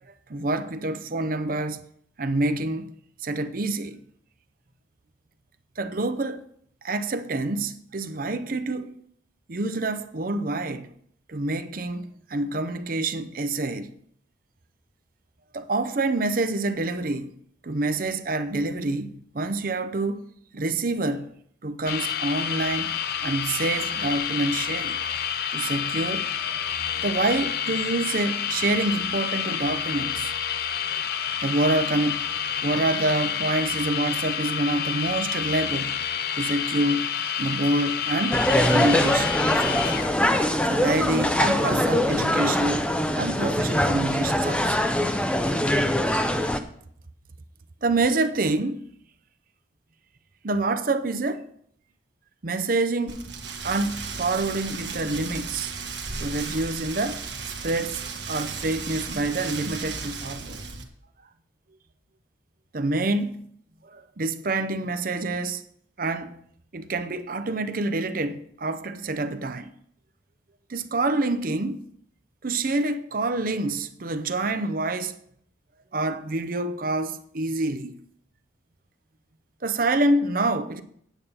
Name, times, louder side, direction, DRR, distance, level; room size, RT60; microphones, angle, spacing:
voice 1, 0.3-1.8 2.2-2.9 3.2-4.0 5.8-6.4 6.8-9.0 9.5-10.9 11.3-13.9 15.5-17.3 17.6-20.3 20.5-21.3 21.6-25.0 25.5-26.6 27.0-30.3 30.9-32.3 32.6-36.0 36.3-37.1 37.4-40.1 40.7-44.8 47.8-48.9 50.4-51.5 52.4-53.2 53.6-55.7 56.2-60.6 62.7-63.4 63.8-65.6 66.0-66.4 66.7-69.7 70.7-71.9 72.4-75.1 75.9-78.0 79.6-80.8, right 2 dB, 45° right, 0.6 m, -27 dB
sound 1, 21.9-40.1, left 8 dB, 50° left, 0.6 m, -29 dB
sound 2, 38.3-46.6, left 1 dB, 5° left, 0.6 m, -23 dB
Rain, 53.1-60.8, right 5 dB, 65° right, 1.4 m, -35 dB
9.0 x 8.4 x 5.5 m
head